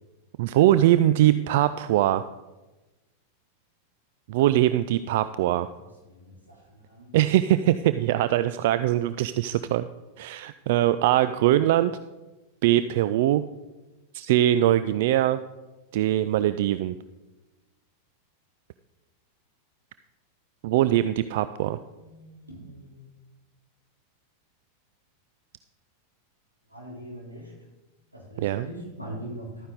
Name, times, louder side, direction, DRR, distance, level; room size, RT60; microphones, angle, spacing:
voice 1, 0.4-2.2 4.3-5.7 7.1-9.9 10.2-11.9 12.6-13.5 14.1-15.4 15.9-16.9 20.6-21.8 28.4-28.7, right 13 dB, 50° right, 13 dB, 0.3 m, -22 dB
voice 2, 6.1-6.6 6.9-7.1 22.0-23.1 26.7-27.5 28.1-29.7, right 1 dB, 90° right, -3 dB, 3.6 m, -41 dB
12.5 x 9.5 x 3.9 m, 1.1 s
figure-of-eight pair, 90°, 0 cm